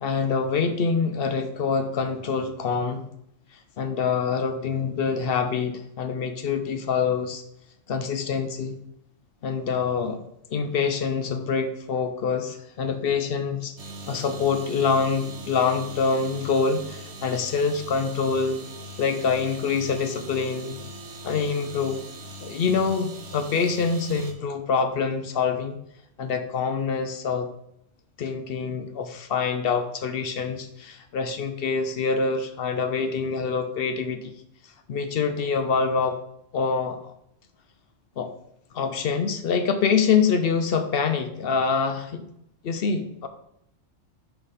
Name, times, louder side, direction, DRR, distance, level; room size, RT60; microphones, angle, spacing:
voice 1, 0.0-3.1 3.8-7.4 7.9-8.8 9.4-10.2 10.5-13.7 14.1-18.6 19.0-20.8 21.2-22.0 22.4-25.8 26.2-27.5 28.2-34.3 34.9-36.2 36.5-37.1 38.2-38.3 38.7-42.2 42.6-43.3, left 5 dB, 60° left, 9 dB, 0.7 m, -25 dB
sound 1, 13.8-24.3, right 1 dB, 65° right, 1.2 m, -41 dB
6.0 x 3.3 x 5.5 m, 0.76 s
omnidirectional pair, 1.3 m